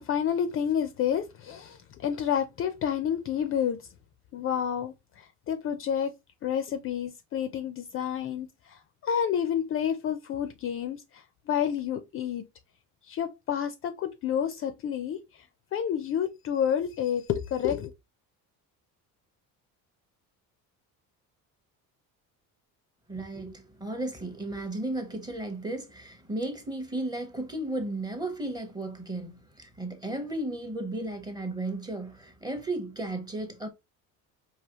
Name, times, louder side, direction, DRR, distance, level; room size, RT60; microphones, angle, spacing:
voice 1, 0.0-3.9 4.3-6.1 6.4-12.5 13.1-15.4 15.7-17.9, left 8 dB, 40° left, 0.4 m, -29 dB
voice 2, 23.1-33.7, right 2 dB, 10° right, 0.7 m, -34 dB
4.7 x 2.7 x 2.8 m
cardioid pair, 155°, 36 cm